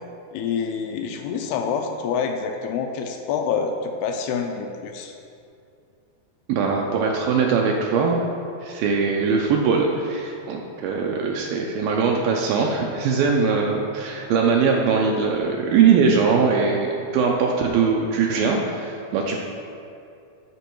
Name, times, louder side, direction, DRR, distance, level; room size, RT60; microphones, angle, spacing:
voice 1, 0.3-5.1, left 6 dB, 80° left, 4 dB, 2.4 m, -27 dB
voice 2, 6.5-8.2 8.6-19.4, right 5 dB, 80° right, 0 dB, 2.2 m, -21 dB
11.0 x 4.4 x 4.6 m, 2.5 s
omnidirectional pair, 4.6 m